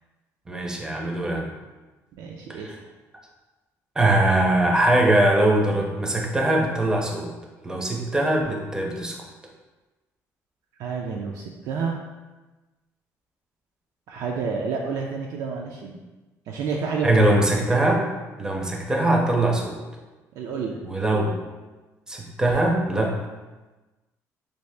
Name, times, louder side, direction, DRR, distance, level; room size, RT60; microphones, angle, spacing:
voice 1, 0.5-1.5 2.6-2.8 4.0-7.3 7.6-9.2 17.0-18.1 18.4-19.8 20.8-21.3 22.1-23.1, right 1 dB, 10° right, 0 dB, 0.5 m, -21 dB
voice 2, 2.2-2.7 10.8-12.0 14.1-16.0 16.5-17.2 20.4-20.8, right 5 dB, 65° right, -1 dB, 0.3 m, -29 dB
3.0 x 2.7 x 3.2 m, 1.2 s
cardioid pair, 150°, 6 cm